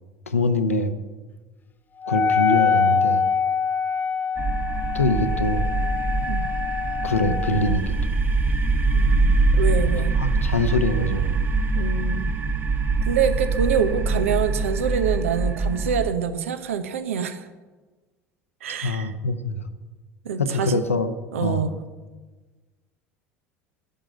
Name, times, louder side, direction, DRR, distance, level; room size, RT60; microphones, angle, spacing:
voice 1, 0.3-0.9 2.1-3.2 4.9-5.6 7.0-8.2 10.2-11.4 18.8-19.7 20.4-21.1 21.4-21.6, left 2 dB, 90° left, 9 dB, 1.0 m, -24 dB
Wind instrument woodwind instrument, 2.0-7.8, left 6 dB, 25° left, 0.6 m, -24 dB
sound 1, 4.4-16.1, right 3 dB, 25° right, 1.3 m, -23 dB
voice 2, 8.9-10.1 11.7-12.3 13.0-17.5 18.6-19.1 20.2-20.8 21.3-21.7, right 7 dB, 75° right, 10 dB, 1.0 m, -26 dB
10.5 x 7.5 x 9.8 m, 1.3 s
hypercardioid pair, 75°, 7 cm